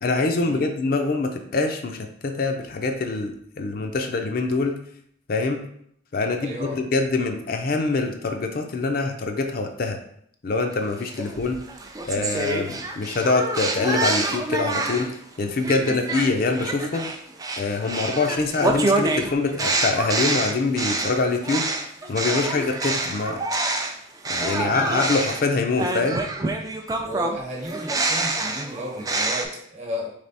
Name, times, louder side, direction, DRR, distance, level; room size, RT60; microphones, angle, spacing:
voice 1, 0.0-4.8 5.3-5.6 6.1-10.0 10.4-11.6 12.1-15.1 15.4-17.1 17.6-21.7 22.1-23.4 24.3-26.2, left 3 dB, 50° left, 4 dB, 0.5 m, -24 dB
voice 2, 6.4-6.8 11.2-11.3 15.8-16.0 27.0-30.1, equal, 35° right, 0 dB, 1.0 m, -33 dB
sound 1, 11.0-15.2 15.6-23.9 24.2-29.4, right 2 dB, 20° right, 0.4 m, -27 dB
3.4 x 3.2 x 4.1 m, 0.67 s
head